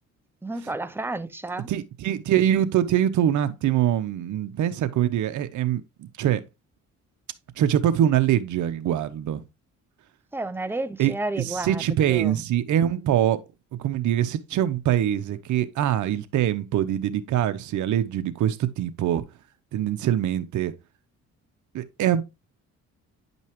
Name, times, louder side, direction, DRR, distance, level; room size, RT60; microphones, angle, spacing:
voice 1, 0.4-1.7 10.3-11.8 12.1-12.3, right 2 dB, 5° right, 0.7 m, -31 dB
voice 2, 1.7-6.4 7.6-9.4 11.0-13.4 13.8-19.2 19.7-20.7 21.7-22.2, right 11 dB, 75° right, 0.9 m, -24 dB
9.6 x 5.4 x 3.0 m
cardioid pair, 90°, 30 cm